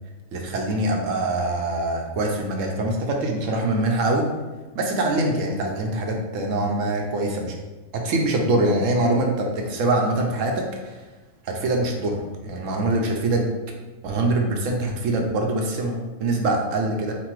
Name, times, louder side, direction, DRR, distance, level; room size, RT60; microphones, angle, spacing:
voice 1, 0.3-4.3 4.7-7.6 7.9-11.0 11.4-13.5 14.0-17.2, right 2 dB, 65° right, 1 dB, 0.9 m, -24 dB
4.1 x 2.2 x 4.5 m, 1.2 s
omnidirectional pair, 1.6 m